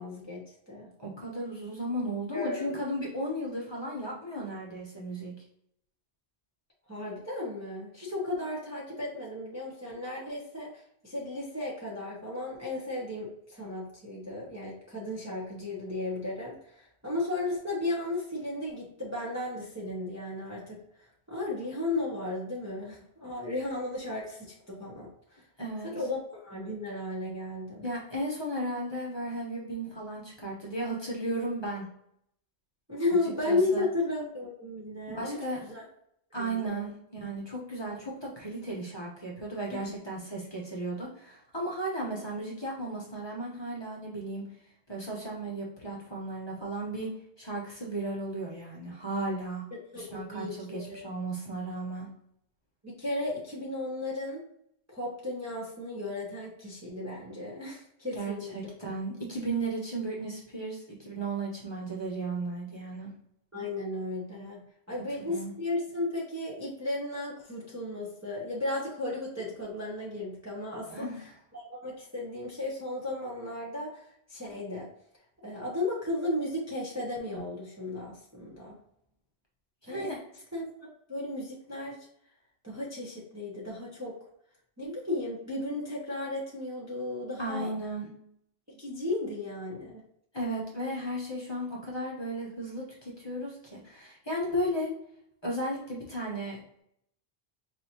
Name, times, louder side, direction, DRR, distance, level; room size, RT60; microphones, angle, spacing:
voice 1, 0.0-0.9 2.3-2.8 6.9-25.1 25.8-27.9 32.9-35.8 36.3-36.9 39.7-39.9 49.7-51.0 52.8-54.4 54.9-58.5 63.5-71.1 71.5-74.9 75.4-78.8 79.9-80.1 80.5-82.0 82.6-84.1 84.8-87.7 88.7-90.0, left 2 dB, 15° right, -5 dB, 0.8 m, -35 dB
voice 2, 1.0-5.3 25.6-25.9 27.8-31.8 33.5-33.9 35.1-35.7 36.3-44.5 44.9-47.1 47.4-49.6 49.9-52.1 58.1-63.1 65.2-65.5 70.9-71.2 79.8-80.2 87.4-88.1 90.3-94.9 95.4-96.8, right 1 dB, 25° left, -4 dB, 1.0 m, -35 dB
4.7 x 2.7 x 2.8 m, 0.71 s
omnidirectional pair, 1.1 m